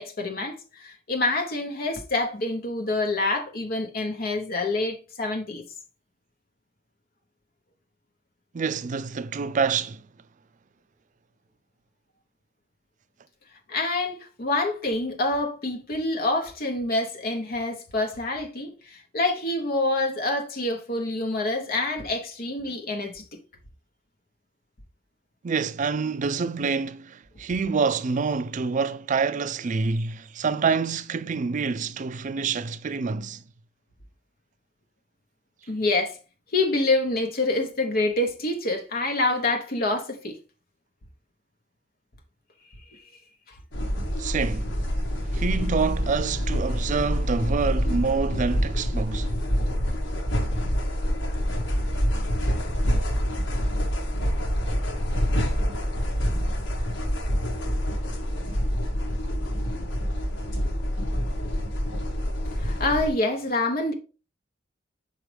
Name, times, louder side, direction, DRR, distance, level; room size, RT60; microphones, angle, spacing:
voice 1, 0.0-5.6 13.7-23.2 35.7-36.2 36.5-40.4 45.4-45.5 62.6-63.9, left 2 dB, 50° left, 0.8 m, -26 dB
voice 2, 8.5-10.0 25.4-33.4 44.2-44.7 45.2-49.3, right 5 dB, 40° right, 0.4 m, -27 dB
sound 1, 43.7-63.1, equal, 80° left, 1.2 m, -26 dB
6.1 x 4.8 x 3.3 m
head